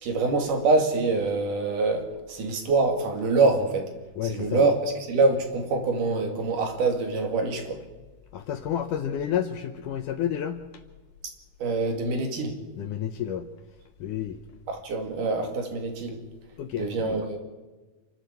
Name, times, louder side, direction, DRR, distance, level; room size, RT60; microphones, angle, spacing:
voice 1, 0.0-3.9 4.2-7.8 11.6-12.6 14.7-16.2 16.7-17.4, right 3 dB, 60° right, 4 dB, 3.9 m, -25 dB
voice 2, 4.2-4.6 8.3-10.6 12.8-13.5 14.0-14.4 16.6-17.2, left 9 dB, 70° left, 7 dB, 2.1 m, -30 dB
28.5 x 12.0 x 8.3 m, 1.3 s
omnidirectional pair, 4.4 m